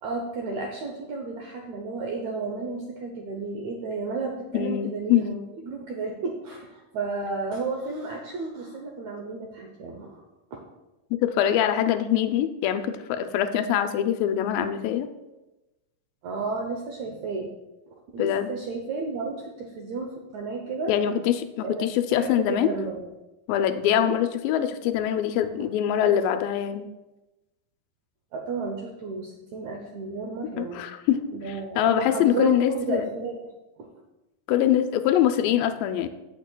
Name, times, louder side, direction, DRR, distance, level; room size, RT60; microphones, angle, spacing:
voice 1, 0.0-10.2 10.5-10.6 16.2-17.5 18.1-20.9 21.6-21.8 22.1-23.0 24.0-24.2 28.3-30.8 31.3-33.4 33.8-33.9, right 3 dB, 75° right, 1 dB, 1.6 m, -32 dB
voice 2, 4.5-5.3 11.1-15.1 18.2-18.5 20.9-22.7 23.5-26.9 30.6-31.2 31.8-33.1 34.5-36.1, left 10 dB, 80° left, 9 dB, 2.3 m, -23 dB
15.5 x 6.6 x 2.2 m, 1.0 s
omnidirectional pair, 4.2 m